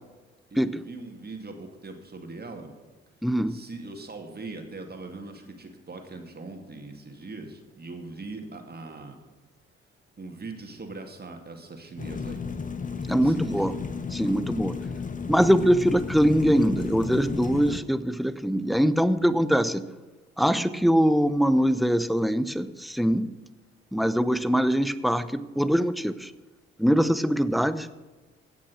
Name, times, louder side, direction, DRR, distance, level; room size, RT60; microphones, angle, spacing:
voice 1, 0.5-2.7 3.5-9.2 10.2-12.5 13.2-13.7, right 3 dB, 30° right, 4 dB, 2.3 m, -41 dB
voice 2, 3.2-3.6 13.1-13.7 14.1-14.7 15.3-19.9 20.4-23.3 23.9-26.3 26.8-27.9, equal, ahead, 15 dB, 0.7 m, -23 dB
sound 1, 12.0-17.8, left 5 dB, 25° left, 1.1 m, -33 dB
16.0 x 6.2 x 6.2 m, 1.2 s
hypercardioid pair, 45°, 31 cm